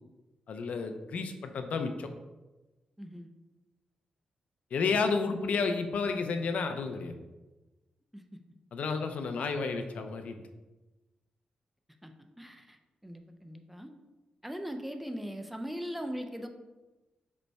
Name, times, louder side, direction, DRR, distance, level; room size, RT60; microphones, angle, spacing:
voice 1, 0.5-2.1 4.7-7.1 8.7-10.4, left 4 dB, 65° left, 7 dB, 0.4 m, -31 dB
voice 2, 3.0-3.3 8.1-8.2 12.0-12.1 12.4-12.8 13.0-13.9 14.4-16.5, equal, 5° right, 5 dB, 0.3 m, -39 dB
5.2 x 2.1 x 4.5 m, 1.1 s
wide cardioid pair, 140°, 2 cm